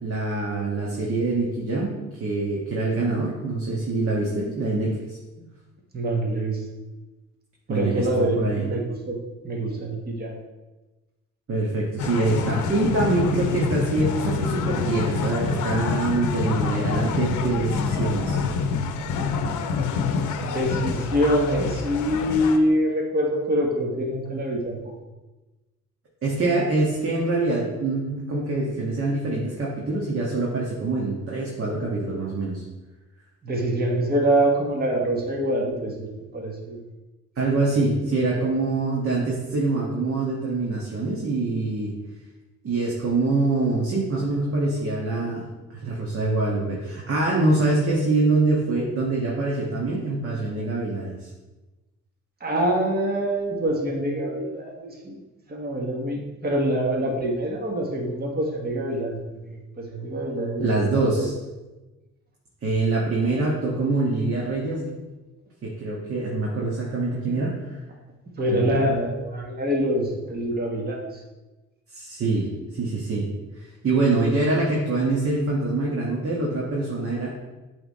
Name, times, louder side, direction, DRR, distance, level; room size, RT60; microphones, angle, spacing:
voice 1, 0.0-5.2 7.7-8.6 11.5-18.4 26.2-32.6 37.4-41.9 42.6-51.3 60.6-61.3 62.6-64.9 65.6-67.8 68.5-68.7 71.9-73.3 73.6-77.3, right 2 dB, 50° right, -3 dB, 1.4 m, -25 dB
voice 2, 5.9-6.6 7.7-9.2 9.4-10.3 20.4-24.9 33.4-36.8 52.4-55.2 55.5-61.3 68.4-71.2, right 1 dB, 30° right, -1 dB, 1.4 m, -25 dB
sound 1, 12.0-22.6, left 5 dB, 75° left, 0.7 m, -26 dB
8.0 x 3.5 x 4.2 m, 1.1 s
cardioid pair, 90°, 30 cm